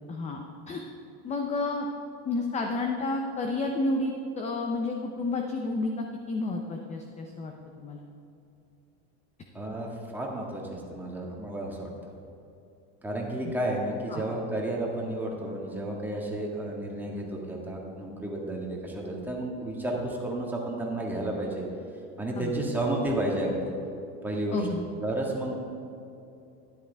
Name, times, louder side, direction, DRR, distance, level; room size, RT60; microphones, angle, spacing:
voice 1, 0.1-0.8 1.2-1.9 2.2-7.5 7.8-8.0 13.4-13.5 14.1-14.2 22.4-22.7 24.5-24.9, left 3 dB, 20° left, 3 dB, 0.6 m, -31 dB
voice 2, 9.5-11.9 13.0-21.6 22.2-23.7 24.2-24.6 25.0-25.6, right 1 dB, 5° right, -2 dB, 1.7 m, -32 dB
12.5 x 10.5 x 3.4 m, 2.7 s
supercardioid pair, 140°, 35 cm